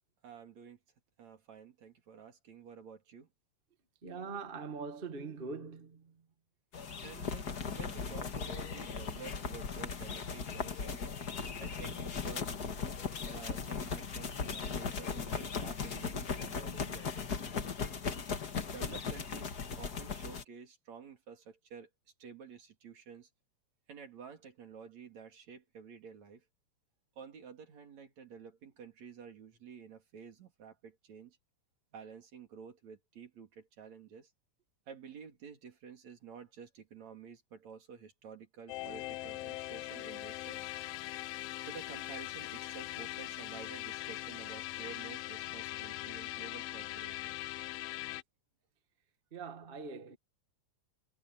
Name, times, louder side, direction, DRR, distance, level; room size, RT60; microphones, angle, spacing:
voice 1, 0.2-0.8 1.2-3.3 7.0-11.0 11.6-12.6 13.2-17.8 18.7-21.9 22.2-23.3 23.9-26.4 27.2-31.4 31.9-34.3 34.9-40.6 41.6-47.4 49.6-49.7, right 6 dB, 65° right, 4.2 m, -51 dB
voice 2, 4.0-6.0 49.3-50.2, right 4 dB, 25° right, 1.3 m, -42 dB
sound 1, 6.7-20.4, left 5 dB, 40° left, 1.8 m, -38 dB
sound 2, 38.7-48.2, left 17 dB, 85° left, 1.4 m, -41 dB
omnidirectional pair, 3.4 m